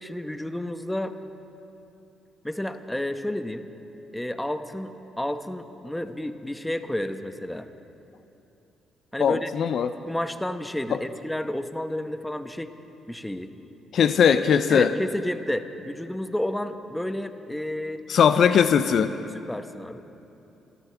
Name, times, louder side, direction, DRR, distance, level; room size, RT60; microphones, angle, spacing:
voice 1, 0.0-1.1 2.4-3.6 4.1-7.7 9.1-9.5 10.1-12.7 13.1-13.5 14.7-18.0 19.5-20.0, left 1 dB, 10° left, 9 dB, 1.0 m, -31 dB
voice 2, 9.2-9.9 10.9-11.0 13.9-14.9 18.1-19.1, left 7 dB, 65° left, 11 dB, 0.5 m, -20 dB
28.5 x 13.0 x 3.4 m, 2.8 s
supercardioid pair, 55°, 0 cm